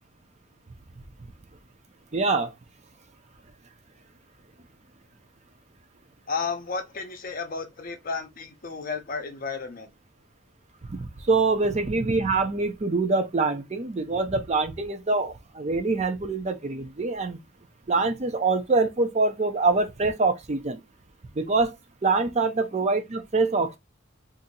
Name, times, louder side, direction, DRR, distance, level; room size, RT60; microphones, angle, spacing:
voice 1, 2.1-2.5 10.9-17.4 17.9-20.8 21.4-21.7 22.0-23.8, right 3 dB, 35° right, 0.5 m, -25 dB
voice 2, 6.3-9.9, left 4 dB, 45° left, 0.7 m, -32 dB
2.7 x 2.5 x 4.0 m
head